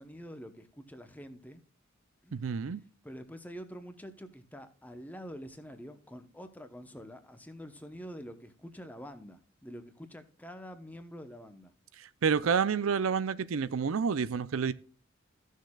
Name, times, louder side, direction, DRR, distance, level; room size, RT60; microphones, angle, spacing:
voice 1, 0.0-1.6 2.2-2.5 3.0-11.7, equal, 10° left, 0.8 m, -46 dB
voice 2, 2.3-2.8 12.0-14.7, right 6 dB, 80° right, 0.5 m, -29 dB
15.0 x 6.5 x 2.3 m
head